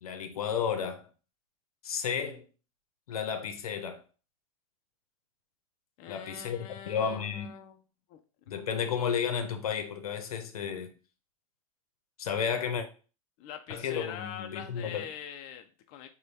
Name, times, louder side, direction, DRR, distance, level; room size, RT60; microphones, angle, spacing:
voice 1, 0.0-1.0 1.8-2.4 3.1-4.0 6.1-7.5 8.5-10.9 12.2-12.9 13.7-15.1, left 7 dB, 80° left, 0.7 m, -32 dB
voice 2, 6.0-7.8 8.1-8.2 8.5-8.6 13.4-16.1, left 9 dB, 45° left, 0.4 m, -43 dB
3.9 x 2.2 x 3.3 m
hypercardioid pair, 100°, 19 cm